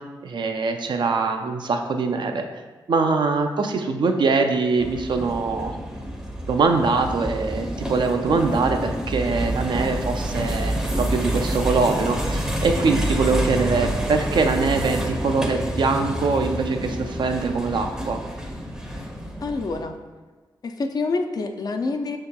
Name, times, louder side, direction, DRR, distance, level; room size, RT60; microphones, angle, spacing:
voice 1, 0.2-2.4 2.9-5.7 6.5-18.2, right 4 dB, 65° right, 5 dB, 0.4 m, -23 dB
sound 1, 4.8-19.8, right 1 dB, 10° right, 0.5 m, -28 dB
voice 2, 19.4-19.9 20.6-22.2, left 3 dB, 50° left, 5 dB, 0.3 m, -26 dB
5.6 x 2.7 x 2.2 m, 1.3 s
wide cardioid pair, 85°, 8 cm